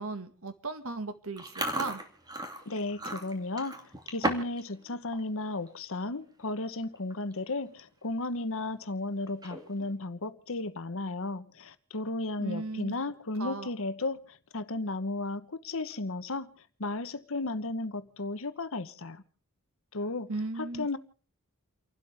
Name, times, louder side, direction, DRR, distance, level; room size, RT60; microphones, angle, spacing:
voice 1, 0.0-2.0 12.4-12.9 13.4-13.7 20.3-20.9, right 3 dB, 70° right, 1.9 m, -36 dB
Chewing mastication, 1.4-4.6 4.9-5.2 5.7-5.9 6.6-6.7 7.0-7.3 7.7-7.8 9.3-9.8, right 1 dB, 20° right, 2.5 m, -35 dB
voice 2, 2.7-3.8 4.1-16.5 16.8-19.2 19.9-20.3 20.6-21.0, left 2 dB, 65° left, 1.1 m, -34 dB
30.0 x 12.0 x 3.5 m
head